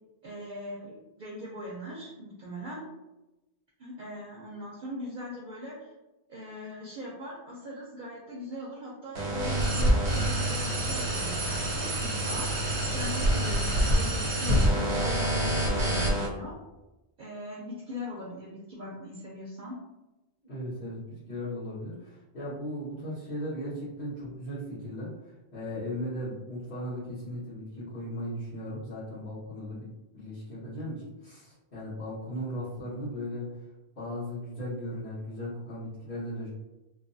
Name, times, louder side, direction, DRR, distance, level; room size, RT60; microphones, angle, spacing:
voice 1, 0.2-2.8 3.8-5.9 6.3-12.5 12.9-16.5 17.2-19.7, left 1 dB, 55° right, -4 dB, 0.6 m, -40 dB
sound 1, 9.1-16.3, right 1 dB, 90° right, 1.0 m, -26 dB
voice 2, 20.4-29.9 30.1-33.5 33.9-36.5, equal, 55° left, -16 dB, 1.6 m, -37 dB
3.2 x 2.1 x 2.6 m, 1.0 s
omnidirectional pair, 1.1 m